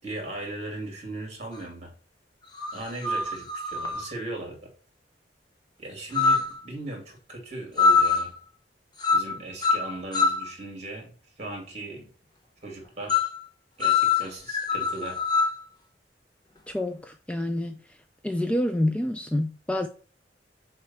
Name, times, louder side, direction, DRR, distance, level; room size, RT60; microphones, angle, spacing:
voice 1, 0.0-1.9 2.7-4.7 5.8-8.3 9.1-12.1 12.6-13.3 13.8-15.2, right 2 dB, 40° right, 2.6 m, -38 dB
sound 1, 1.5-1.6 2.6-4.1 6.1-6.6 7.8-8.3 9.0-9.3 9.6-10.5 13.1-13.4 13.8-15.6, left 5 dB, 25° left, 1.0 m, -24 dB
voice 2, 16.7-17.8 18.2-19.9, left 1 dB, 5° left, 0.3 m, -27 dB
4.8 x 4.3 x 5.6 m
head